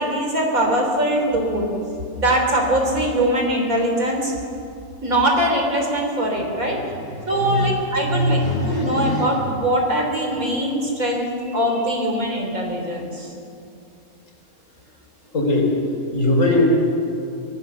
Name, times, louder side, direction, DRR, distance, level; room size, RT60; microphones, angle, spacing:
voice 1, 0.0-1.7 2.1-4.3 5.0-6.9 7.3-8.4 8.7-13.3, right 1 dB, 70° right, 2 dB, 3.8 m, -22 dB
voice 2, 6.6-9.5 11.4-11.9 15.3-15.8 16.1-16.7, left 1 dB, 60° left, 0 dB, 3.9 m, -22 dB
24.5 x 15.5 x 7.0 m, 2.6 s
omnidirectional pair, 1.5 m